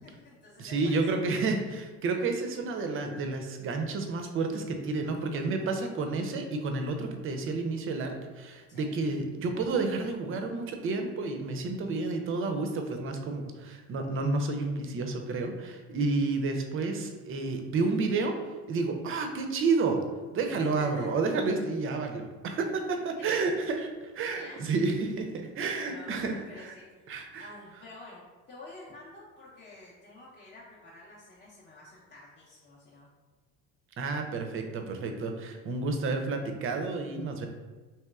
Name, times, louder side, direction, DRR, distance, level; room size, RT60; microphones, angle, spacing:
voice 1, 0.0-1.2 5.1-5.7 8.7-8.9 20.6-21.1 23.2-23.7 24.3-24.7 25.8-28.2 28.5-33.1, left 2 dB, 25° left, -7 dB, 0.7 m, -49 dB
voice 2, 0.6-18.3 18.7-20.0 20.3-26.7 27.1-27.5 34.0-37.5, right 3 dB, 35° right, 4 dB, 0.5 m, -30 dB
3.0 x 2.9 x 2.3 m, 1.3 s
supercardioid pair, 85°, 36 cm